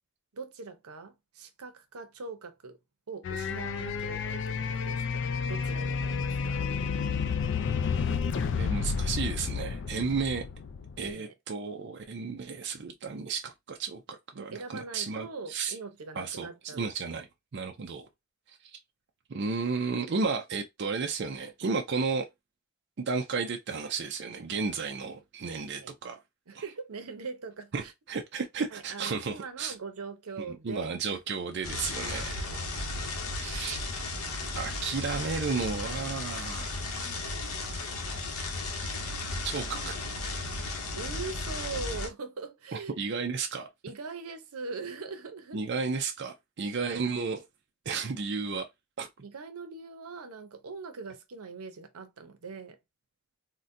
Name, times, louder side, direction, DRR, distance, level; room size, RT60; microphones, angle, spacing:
voice 1, 0.3-2.8 3.1-6.7 10.2-10.3 11.0-11.3 14.4-16.9 25.7-25.9 26.5-27.9 28.7-30.9 31.9-32.2 32.5-32.7 41.0-43.1 43.8-45.6 49.2-52.8, right 4 dB, 85° right, 0.7 m, -42 dB
sound 1, 3.2-11.1, left 5 dB, 55° left, 0.3 m, -31 dB
voice 2, 8.3-10.5 11.0-15.8 16.2-17.3 17.5-18.1 18.5-18.8 19.3-22.3 23.0-26.2 26.5-26.6 27.7-29.7 30.5-32.4 33.3-33.8 34.5-36.9 39.4-40.0 42.7-43.7 45.5-47.4 47.9-48.7 49.0-49.1, right 4 dB, 50° right, 0.4 m, -33 dB
sound 2, 31.6-42.1, left 2 dB, 80° left, 0.9 m, -35 dB
3.8 x 2.1 x 2.6 m
head